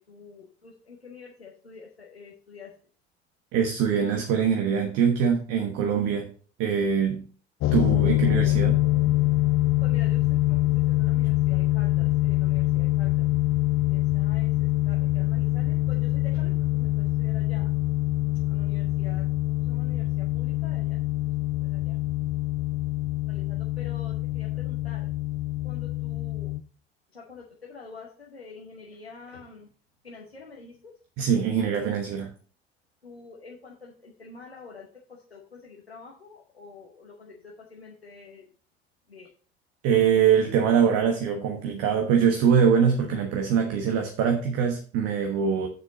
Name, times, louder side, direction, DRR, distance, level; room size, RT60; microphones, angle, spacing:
voice 1, 0.0-2.7 9.8-10.6 10.9-13.3 13.9-17.7 18.5-21.3 21.6-22.0 23.3-25.1 25.6-26.5 27.1-29.7 30.0-30.9 33.0-38.5 39.1-39.3, left 4 dB, 90° left, 0.9 m, -47 dB
voice 2, 3.5-6.3 6.6-7.2 7.7-8.8 31.2-32.3 39.8-45.7, right 7 dB, 55° right, 1.2 m, -23 dB
sound 1, 7.6-26.6, left 17 dB, 45° left, 0.5 m, -25 dB
7.0 x 6.6 x 3.9 m
figure-of-eight pair, 55°, 30 cm